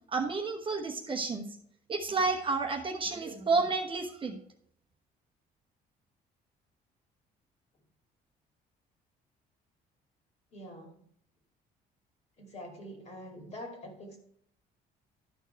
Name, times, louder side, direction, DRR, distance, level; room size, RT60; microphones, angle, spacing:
voice 1, 0.1-1.4 1.9-4.4, right 4 dB, 30° right, 4 dB, 1.0 m, -30 dB
voice 2, 10.5-11.0 12.4-14.2, equal, 40° left, 2 dB, 2.4 m, -45 dB
12.0 x 4.6 x 4.6 m, 0.67 s
cardioid pair, 110°, 17 cm